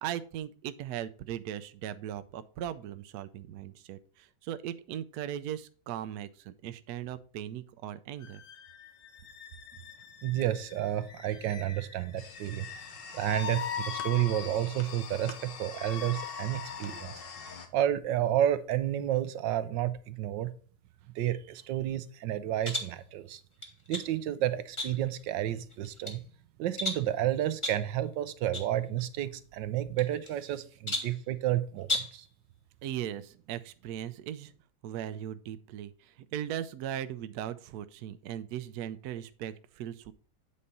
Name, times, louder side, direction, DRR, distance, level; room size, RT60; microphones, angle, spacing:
voice 1, 0.0-8.4 32.8-34.5 34.8-40.1, right 11 dB, 70° right, 1.0 m, -38 dB
sound 1, 8.2-17.0, left 8 dB, 55° left, 0.6 m, -42 dB
voice 2, 10.2-12.7 13.1-17.1 17.7-20.5 21.1-23.4 23.9-26.2 26.6-32.3, right 12 dB, 90° right, 1.3 m, -31 dB
sound 2, 12.2-17.7, left 5 dB, 75° left, 1.7 m, -45 dB
sound 3, 22.6-23.0 23.6-24.1 24.8-25.2 25.7-26.2 26.8-27.1 27.6-27.9 28.5-28.7 29.0-29.1 30.0-30.5 30.9-31.2 31.8-32.2, left 2 dB, 20° left, 1.1 m, -35 dB
8.6 x 4.2 x 5.2 m
omnidirectional pair, 1.9 m